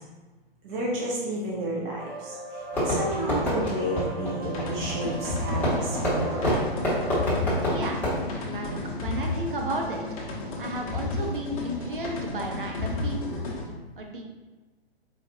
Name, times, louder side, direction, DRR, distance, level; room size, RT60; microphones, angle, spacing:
voice 1, 0.6-6.5, right 1 dB, 20° right, -4 dB, 0.5 m, -31 dB
sound 1, 2.0-7.3, right 2 dB, 85° right, 1.0 m, -39 dB
Fireworks, 2.7-9.3, equal, 5° left, 1.1 m, -29 dB
sound 2, 4.4-13.7, left 2 dB, 35° left, 0.8 m, -33 dB
voice 2, 7.7-8.0 8.4-10.2 10.6-13.4 14.0-14.2, right 1 dB, 60° right, 1 dB, 0.7 m, -33 dB
4.5 x 2.4 x 2.9 m, 1.2 s
figure-of-eight pair, 120°, 31 cm